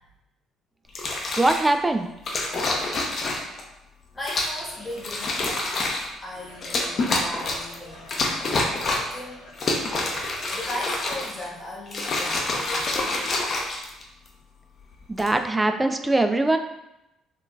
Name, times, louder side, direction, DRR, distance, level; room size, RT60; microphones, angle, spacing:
sound 1, 0.9-1.7 2.3-3.6 4.2-4.6 5.0-6.1 6.6-7.7 8.1-9.2 9.5-11.4 11.9-14.3 15.0-15.3, left 2 dB, 50° left, 0.6 m, -27 dB
voice 1, 1.4-2.1 15.1-16.6, right 2 dB, 20° right, 7 dB, 0.3 m, -21 dB
voice 2, 4.1-5.5 6.2-9.5 10.5-13.4, left 1 dB, 20° left, -4 dB, 1.2 m, -37 dB
sound 2, 4.5-5.3 6.3-10.8 12.3-13.4, left 1 dB, 80° left, 0.9 m, -46 dB
3.6 x 2.4 x 2.3 m, 0.91 s
hypercardioid pair, 55°, 0 cm